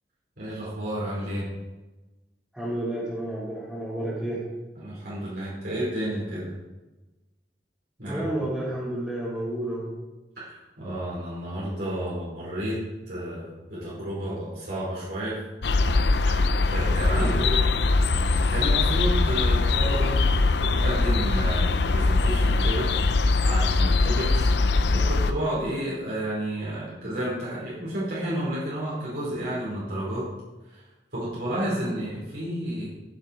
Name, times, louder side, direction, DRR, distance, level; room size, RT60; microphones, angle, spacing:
voice 1, 0.4-1.5 4.7-6.5 8.0-8.2 10.4-12.8 13.1-15.4 16.3-16.4 16.7-17.4 18.5-20.2 20.6-22.9 23.4-24.5 24.8-30.2 30.7-30.8 31.1-32.9, right 1 dB, 65° right, -8 dB, 5.0 m, -31 dB
voice 2, 2.5-4.4 8.1-9.9 17.1-17.5, right 1 dB, ahead, -12 dB, 3.6 m, -30 dB
sound 1, 15.6-25.3, left 3 dB, 75° left, 0.6 m, -22 dB
15.5 x 7.6 x 4.8 m, 1.1 s
head